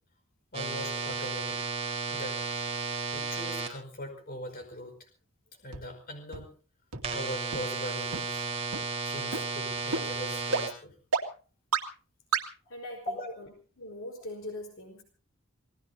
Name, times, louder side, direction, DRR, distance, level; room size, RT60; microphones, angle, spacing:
voice 1, 0.5-1.6 2.1-2.4 3.1-5.0 5.6-6.5 7.1-8.5 9.0-10.9 12.7-12.8 13.1-13.3, equal, 40° left, 5 dB, 5.1 m, -40 dB
sound 1, 0.5-3.7 7.0-10.7, right 4 dB, 30° right, 4.1 m, -33 dB
sound 2, 5.7-5.8 6.3-6.4 6.9-7.0 7.5-7.6 8.1-8.2 8.7-8.8 9.3-9.4 9.9-10.0 10.5-10.6 11.1-11.2 11.7-11.8 12.3-12.4, right 5 dB, 85° right, 2.2 m, -28 dB
voice 2, 12.7-13.5 13.8-15.0, left 1 dB, 60° left, 2 dB, 4.3 m, -41 dB
27.5 x 18.5 x 2.8 m, 0.38 s
head